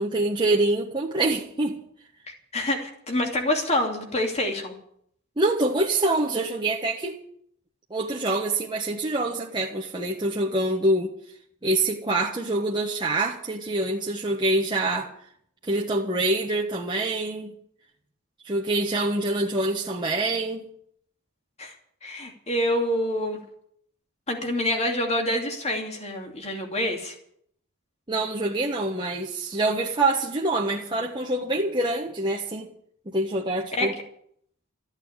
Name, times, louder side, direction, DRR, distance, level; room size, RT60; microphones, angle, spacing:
voice 1, 0.0-1.8 5.4-7.2 7.9-11.1 11.6-15.1 15.6-17.5 18.4-20.6 28.1-32.7 33.1-33.9, right 2 dB, 20° right, -2 dB, 1.3 m, -25 dB
voice 2, 2.3-4.7 21.6-21.7 22.0-23.4 24.3-27.2 33.7-33.9, left 1 dB, 30° left, 3 dB, 2.8 m, -27 dB
14.5 x 8.8 x 9.6 m, 0.68 s
head